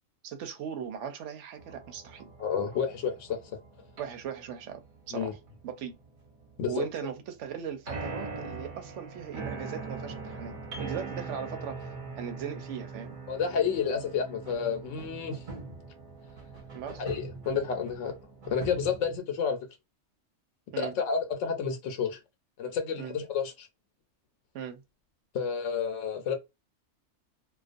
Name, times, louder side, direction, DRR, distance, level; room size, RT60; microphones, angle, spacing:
voice 1, 0.2-2.3 4.0-4.8 5.1-5.4 5.6-6.0 6.7-11.9 12.2-13.2 16.7-17.0 20.7-21.0 23.0-23.2 24.5-24.8, right 8 dB, 75° right, 0.9 m, -38 dB
sound 1, 1.6-19.2, right 4 dB, 50° right, 0.8 m, -42 dB
voice 2, 2.4-3.4 5.1-5.3 6.6-6.9 13.3-15.4 16.9-18.2 18.5-19.7 20.8-22.2 22.6-23.7 25.3-26.4, left 6 dB, 90° left, 1.0 m, -30 dB
2.3 x 2.2 x 2.5 m
omnidirectional pair, 1.2 m